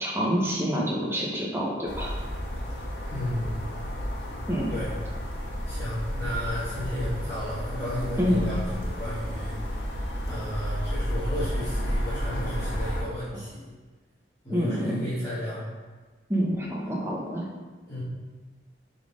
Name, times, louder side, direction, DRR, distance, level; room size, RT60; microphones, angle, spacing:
voice 1, 0.0-2.1 4.5-4.7 8.2-8.4 14.5-15.1 16.3-17.5, equal, 15° right, -3 dB, 1.2 m, -27 dB
sound 1, 1.9-13.0, equal, 65° left, 1.4 m, -32 dB
voice 2, 3.0-3.5 4.7-4.9 5.6-9.5 10.3-13.7 14.4-15.6 17.9-18.0, equal, 20° left, -13 dB, 1.7 m, -33 dB
6.8 x 4.2 x 5.3 m, 1.3 s
head